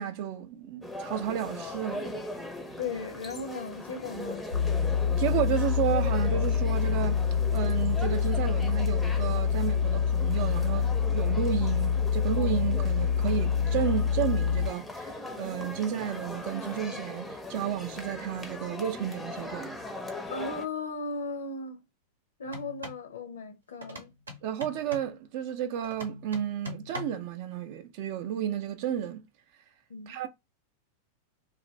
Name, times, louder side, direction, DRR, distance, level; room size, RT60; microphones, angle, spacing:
voice 1, 0.0-2.1 5.2-19.7 24.4-29.2 30.1-30.3, right 10 dB, 45° right, 0.5 m, -32 dB
sound 1, 0.8-20.6, left 2 dB, 5° left, 0.6 m, -40 dB
voice 2, 2.8-4.5 20.3-21.8 22.4-24.1 29.9-30.2, left 4 dB, 65° left, 0.6 m, -36 dB
sound 2, 4.5-14.7, left 7 dB, 85° left, 0.9 m, -26 dB
sound 3, 22.4-23.1 23.8-25.2 25.8-27.3, left 2 dB, 75° right, 0.8 m, -42 dB
2.5 x 2.4 x 3.1 m
figure-of-eight pair, 90°, 0 cm